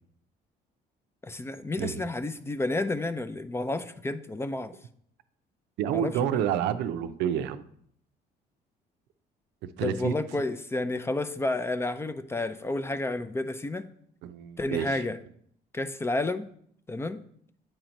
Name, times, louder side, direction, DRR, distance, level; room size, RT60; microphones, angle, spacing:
voice 1, 1.2-4.7 5.9-6.4 9.8-13.9 14.6-15.2 15.7-16.5 16.9-17.2, left 2 dB, 15° left, 12 dB, 0.4 m, -31 dB
voice 2, 5.8-7.6 9.6-10.1 14.2-15.0, right 9 dB, 85° right, 11 dB, 0.5 m, -29 dB
8.9 x 3.0 x 5.1 m, 0.65 s
cardioid pair, 110°, 17 cm